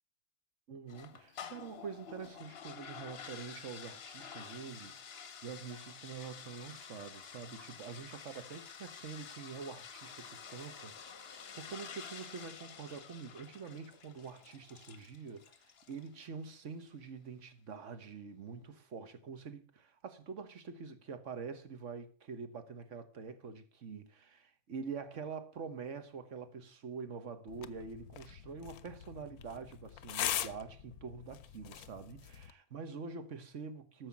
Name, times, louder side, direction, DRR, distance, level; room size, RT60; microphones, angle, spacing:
voice 1, 0.7-34.1, right 5 dB, 50° right, 1.6 m, -46 dB
sound 1, 0.9-16.1, left 7 dB, 45° left, 1.0 m, -50 dB
sound 2, 27.5-32.5, left 11 dB, 70° left, 1.1 m, -42 dB
13.0 x 6.7 x 7.3 m
omnidirectional pair, 1.7 m